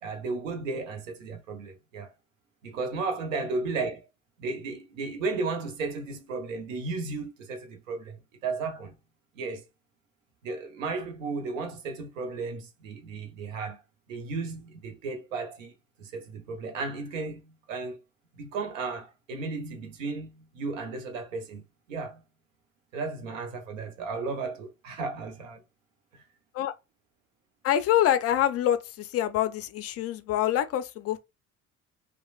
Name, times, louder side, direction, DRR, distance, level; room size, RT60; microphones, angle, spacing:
voice 1, 0.0-2.1 2.6-4.0 4.4-8.2 8.4-9.0 9.4-9.6 10.4-13.8 14.1-15.7 16.0-18.0 18.4-21.6 21.9-22.2 22.9-25.6, right 4 dB, 80° right, 0.7 m, -34 dB
voice 2, 27.6-31.2, left 11 dB, 40° left, 0.4 m, -25 dB
2.9 x 2.2 x 2.3 m
hypercardioid pair, 55°, 38 cm